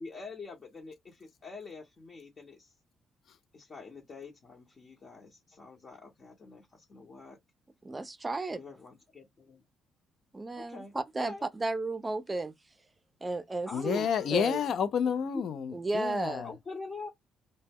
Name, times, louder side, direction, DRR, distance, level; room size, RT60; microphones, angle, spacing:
voice 1, 0.0-2.7 3.5-7.4 8.5-9.6 10.6-11.5 13.7-14.7 16.4-17.1, left 4 dB, 45° left, 0.9 m, -46 dB
voice 2, 7.8-8.6 10.3-12.5 13.2-14.6 15.7-16.5, right 3 dB, 25° right, 0.5 m, -34 dB
voice 3, 13.7-16.5, left 7 dB, 65° left, 0.4 m, -30 dB
2.1 x 2.0 x 3.4 m
supercardioid pair, 70°, 0 cm